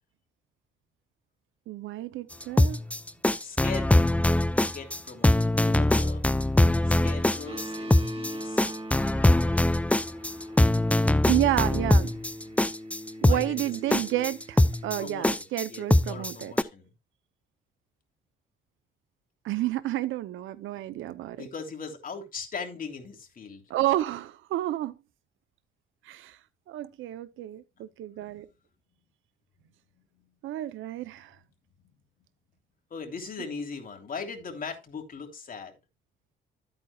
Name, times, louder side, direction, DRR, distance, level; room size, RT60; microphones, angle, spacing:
voice 1, 1.7-2.8 11.1-12.1 13.2-16.5 19.4-21.4 23.7-24.9 26.0-26.4 26.7-28.5 30.4-31.4, right 14 dB, 80° right, 0.7 m, -30 dB
sound 1, 2.4-16.6, left 1 dB, 5° left, 0.5 m, -22 dB
voice 2, 3.4-4.2 4.7-6.2 6.8-8.7 13.2-14.3 15.0-16.9 20.9-21.0 21.3-23.6 28.1-28.4 30.0-30.3 32.9-35.7, left 5 dB, 45° left, 3.2 m, -40 dB
sound 2, 7.5-15.1, equal, 25° right, 2.2 m, -40 dB
12.5 x 8.9 x 2.3 m
cardioid pair, 90°, 20 cm